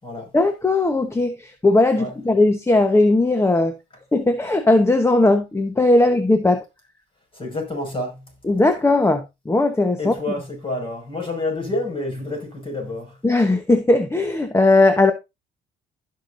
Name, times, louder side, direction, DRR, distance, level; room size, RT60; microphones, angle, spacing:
voice 1, 0.3-3.8 4.1-6.6 8.4-10.1 13.2-15.1, left 2 dB, 15° left, 1.1 m, -18 dB
voice 2, 7.3-8.2 10.0-13.1, left 2 dB, 30° left, 5.8 m, -28 dB
16.0 x 5.7 x 2.6 m
cardioid pair, 95°, 18 cm